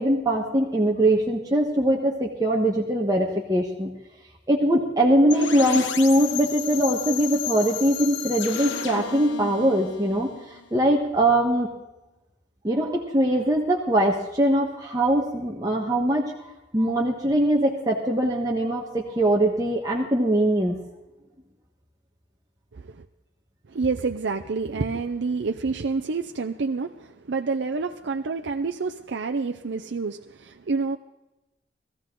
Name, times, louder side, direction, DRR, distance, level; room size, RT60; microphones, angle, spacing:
voice 1, 0.0-3.9 4.5-11.7 12.6-20.8, right 1 dB, 20° right, -1 dB, 1.3 m, -22 dB
sound 1, 5.3-11.1, left 8 dB, 85° left, 0.9 m, -33 dB
voice 2, 22.7-23.1 23.7-31.0, right 4 dB, 70° right, 4 dB, 0.6 m, -28 dB
19.0 x 14.0 x 3.8 m, 1.0 s
head